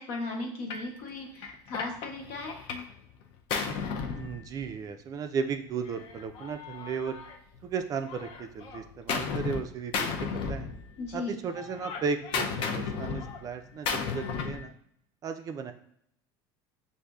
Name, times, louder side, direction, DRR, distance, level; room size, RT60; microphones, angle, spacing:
voice 1, 0.0-2.6 11.0-11.4, left 3 dB, 65° left, 1 dB, 1.1 m, -36 dB
Gunshot gunfire, 0.7-0.9 1.4-2.9 3.2-4.9 5.9-7.7 8.1-9.6 9.9-11.2 11.5-14.7, left 5 dB, 50° left, 0.5 m, -34 dB
voice 2, 4.1-7.2 7.6-10.7 11.1-14.7 15.2-15.7, right 6 dB, 35° right, 7 dB, 0.3 m, -35 dB
6.4 x 2.6 x 2.3 m, 0.70 s
supercardioid pair, 130°, 11 cm